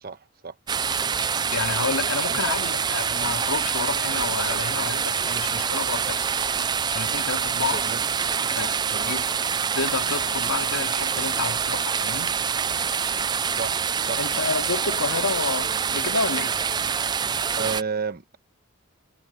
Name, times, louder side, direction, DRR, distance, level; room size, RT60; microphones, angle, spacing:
voice 1, 0.0-0.5 2.3-2.4 7.7-8.0 9.0-9.1 13.5-13.8 14.1-14.2 17.6-18.4, right 5 dB, 45° right, 1.2 m, -31 dB
sound 1, 0.7-17.8, right 6 dB, 20° right, 0.3 m, -26 dB
voice 2, 1.5-6.3 6.9-7.9 8.5-9.2 9.7-12.4 14.2-16.6, left 4 dB, 90° left, 2.7 m, -29 dB
head